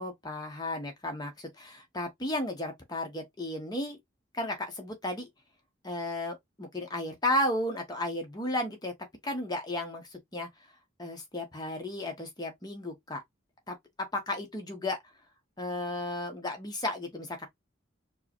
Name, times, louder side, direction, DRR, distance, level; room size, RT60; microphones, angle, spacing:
voice 1, 0.0-4.0 4.3-5.3 5.8-8.9 9.2-10.5 11.0-13.2 13.7-13.8 14.1-15.0 15.6-17.5, left 1 dB, 20° left, 0.8 m, -34 dB
4.6 x 2.1 x 2.9 m
head